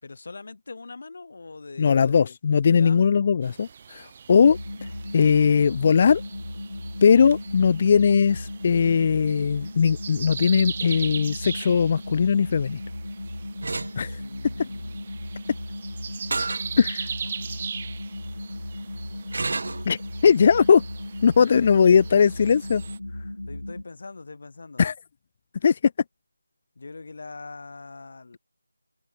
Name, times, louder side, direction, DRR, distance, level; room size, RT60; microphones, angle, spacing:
voice 1, 0.0-2.2 2.6-3.1 14.1-15.3 17.2-17.6 23.5-24.9 26.8-28.4, left 3 dB, 50° left, 6.5 m, -43 dB
voice 2, 1.8-4.6 5.1-6.2 7.0-12.8 14.0-14.2 16.8-17.1 19.9-20.8 21.2-22.8 24.8-24.9 25.6-25.8, left 6 dB, 30° left, 0.6 m, -19 dB
sound 1, 3.4-23.0, right 6 dB, 30° right, 1.7 m, -40 dB
sound 2, 4.3-23.8, left 1 dB, 90° left, 3.5 m, -36 dB
sound 3, 13.6-13.9 16.3-16.7 17.2-17.3 19.3-19.8, right 3 dB, 50° right, 0.8 m, -29 dB
open air
figure-of-eight pair, 165°, 0 cm